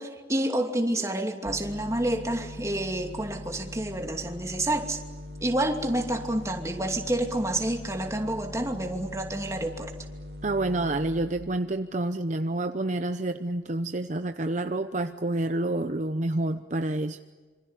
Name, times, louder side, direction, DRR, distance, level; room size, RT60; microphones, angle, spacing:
voice 1, 0.0-5.0 5.4-9.9, right 1 dB, 15° right, 4 dB, 2.6 m, -29 dB
sound 1, 1.5-11.2, left 1 dB, 75° right, 2.8 m, -41 dB
voice 2, 10.4-17.2, right 2 dB, 45° right, 9 dB, 0.8 m, -28 dB
26.5 x 25.5 x 8.2 m, 1.4 s
head